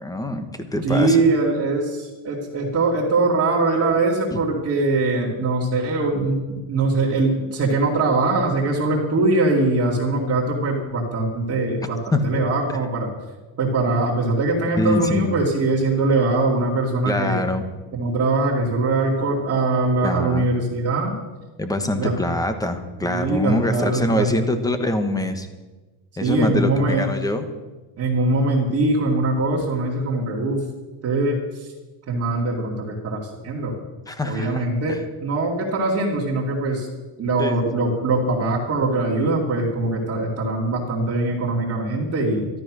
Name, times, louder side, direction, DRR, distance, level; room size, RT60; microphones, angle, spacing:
voice 1, 0.0-1.2 4.3-4.4 12.1-12.2 14.8-15.3 17.0-17.6 20.0-20.5 21.6-25.5 26.2-27.5 34.1-35.0 37.4-37.9, left 1 dB, 5° left, 8 dB, 1.1 m, -24 dB
voice 2, 0.8-13.1 13.6-17.4 17.9-21.1 21.9-22.1 23.0-24.3 26.2-27.0 28.0-30.6 31.0-31.7 32.1-33.8 34.2-36.9 37.2-42.5, right 2 dB, 30° right, -5 dB, 2.6 m, -22 dB
13.0 x 12.5 x 6.2 m, 1.2 s
cardioid pair, 155°, 49 cm